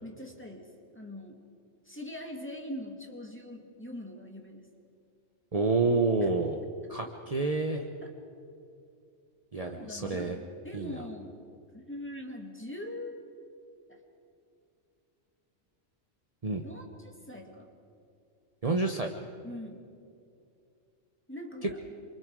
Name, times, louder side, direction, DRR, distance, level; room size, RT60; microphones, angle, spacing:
voice 1, 0.0-1.4 1.8-4.7 6.2-6.3 8.0-8.1 9.6-11.4 11.7-13.2 13.9-14.0 16.6-17.7 19.4-19.9 21.3-21.8, left 1 dB, 10° left, 1 dB, 2.2 m, -42 dB
voice 2, 5.5-6.6 6.9-7.9 9.5-10.4 10.7-10.9 16.4-16.6 18.6-19.1 21.6-21.7, right 3 dB, 30° right, 3 dB, 1.0 m, -28 dB
27.5 x 24.0 x 4.8 m, 2.5 s
omnidirectional pair, 1.3 m